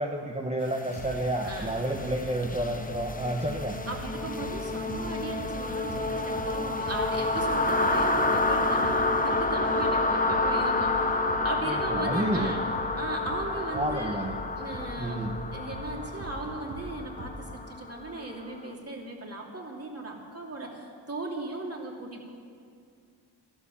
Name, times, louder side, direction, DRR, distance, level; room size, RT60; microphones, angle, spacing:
voice 1, 0.0-3.8 11.7-12.5 13.7-14.3 15.0-15.3, right 1 dB, 15° right, 1 dB, 1.1 m, -30 dB
sound 1, 0.7-18.5, left 2 dB, 15° left, 1.1 m, -29 dB
sound 2, 0.9-4.1 4.4-17.4, equal, 70° right, 3.5 m, -41 dB
voice 2, 3.9-12.6 13.0-14.3 14.6-22.3, right 2 dB, 30° right, -1 dB, 2.9 m, -37 dB
14.0 x 11.5 x 7.0 m, 2.2 s
cardioid pair, 75°, 47 cm